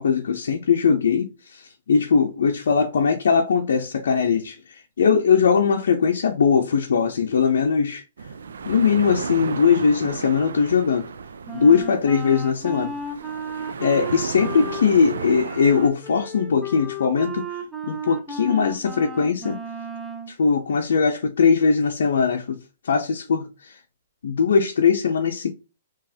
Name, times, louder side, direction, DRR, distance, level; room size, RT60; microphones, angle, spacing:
voice 1, 0.0-8.0 8.6-11.1 11.5-12.9 13.8-19.6 20.3-22.6 22.8-23.8 24.2-25.5, left 6 dB, 80° left, 0.6 m, -20 dB
sound 1, 8.2-15.9, right 5 dB, 90° right, 0.4 m, -34 dB
Wind instrument woodwind instrument, 11.5-20.3, right 2 dB, ahead, 0.6 m, -34 dB
3.8 x 3.0 x 2.8 m
hypercardioid pair, 155°, 0 cm